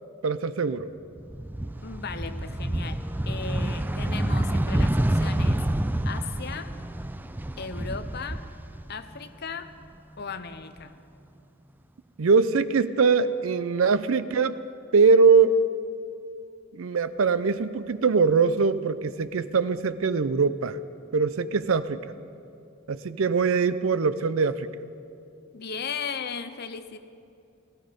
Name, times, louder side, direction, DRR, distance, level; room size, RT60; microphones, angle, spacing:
voice 1, 0.2-0.9 12.2-14.6 14.9-15.6 16.7-20.8 21.1-22.0 22.9-24.7, right 4 dB, 70° right, 14 dB, 0.5 m, -22 dB
sound 1, 1.2-9.3 9.7-10.8, right 1 dB, 10° right, 0.3 m, -28 dB
voice 2, 1.8-5.7 6.0-6.7 7.6-8.4 8.9-9.7 10.2-11.0 25.5-27.0, left 5 dB, 50° left, 10 dB, 0.7 m, -36 dB
17.5 x 15.5 x 5.2 m, 2.5 s
head